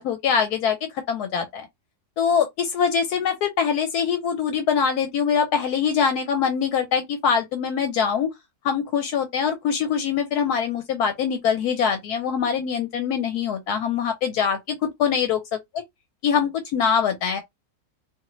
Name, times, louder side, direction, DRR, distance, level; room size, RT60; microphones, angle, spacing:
voice 1, 0.0-1.7 2.2-8.3 8.6-15.4 16.2-17.4, left 7 dB, 75° left, 1.1 m, -23 dB
2.7 x 2.6 x 3.0 m
omnidirectional pair, 1.7 m